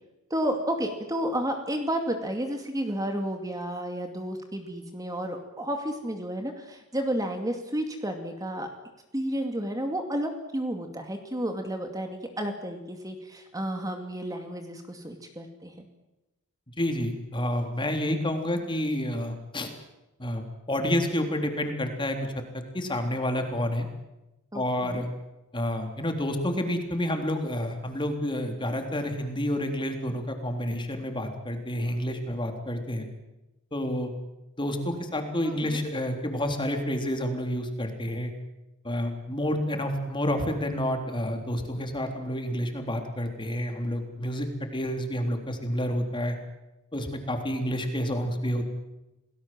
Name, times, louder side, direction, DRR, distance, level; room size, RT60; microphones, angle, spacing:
voice 1, 0.3-8.7 9.1-15.7 24.5-25.1 35.4-35.8, right 1 dB, 15° right, 5 dB, 2.4 m, -31 dB
voice 2, 16.8-19.7 20.2-23.9 24.5-25.1 25.5-33.1 33.7-34.1 34.6-38.3 38.8-46.4 46.9-48.6, equal, 20° left, 4 dB, 3.6 m, -29 dB
28.5 x 19.0 x 7.7 m, 0.99 s
head